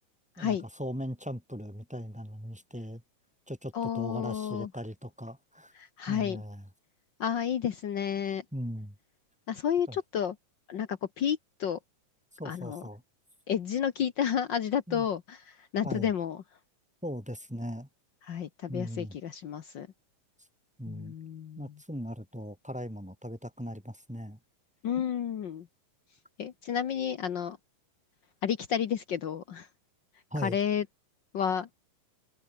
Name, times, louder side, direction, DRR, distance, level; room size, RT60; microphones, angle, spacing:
voice 1, 0.4-3.0 3.5-5.7 6.1-6.6 8.5-8.9 9.9-10.0 12.4-13.0 14.9-15.1 15.8-16.1 17.0-17.9 18.7-19.1 20.8-21.1 21.6-24.4 30.3-30.6, equal, ahead, 3.2 m, -39 dB
voice 2, 3.7-4.7 5.7-6.4 7.2-8.4 9.5-10.4 10.7-11.8 12.4-12.8 13.5-16.4 18.2-19.9 20.9-21.7 24.8-25.7 26.4-27.6 28.4-29.7 30.4-30.8 31.3-31.8, left 8 dB, 80° left, 1.0 m, -31 dB
omnidirectional pair, 3.9 m